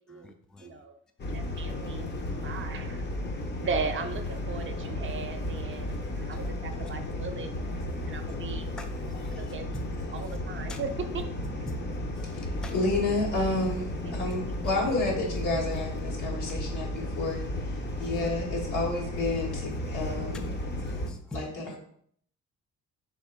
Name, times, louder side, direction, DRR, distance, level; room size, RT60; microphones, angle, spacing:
voice 1, 0.1-0.8 1.2-1.6 3.3-3.4 6.1-6.5 7.9-8.4 8.8-10.4 10.7-10.8 11.7-11.8 12.1-12.7 20.8-21.4, left 1 dB, ahead, 6 dB, 0.4 m, -45 dB
voice 2, 0.6-1.0 1.3-2.1 2.4-3.0 3.6-7.5 8.1-8.7 9.4-9.7 10.1-11.3, right 5 dB, 40° right, 7 dB, 0.6 m, -37 dB
sound 1, 1.2-21.1, left 1 dB, 35° left, 0.7 m, -34 dB
voice 3, 12.3-20.4 21.3-21.8, left 2 dB, 80° left, -3 dB, 1.7 m, -30 dB
3.5 x 3.3 x 4.4 m, 0.64 s
cardioid pair, 90°, 30 cm